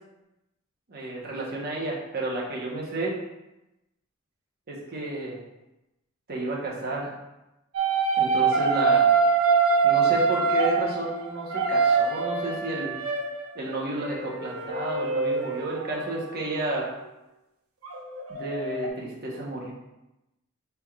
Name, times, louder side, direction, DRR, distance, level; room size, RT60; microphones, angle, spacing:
voice 1, 0.9-3.2 4.7-5.4 6.3-7.1 8.2-9.1 9.8-13.0 13.5-16.9 18.3-19.7, right 2 dB, 50° right, -3 dB, 1.0 m, -31 dB
sound 1, 7.7-13.4 14.0-16.3 17.8-18.9, right 5 dB, 85° right, 0.7 m, -24 dB
5.8 x 3.4 x 2.4 m, 0.95 s
head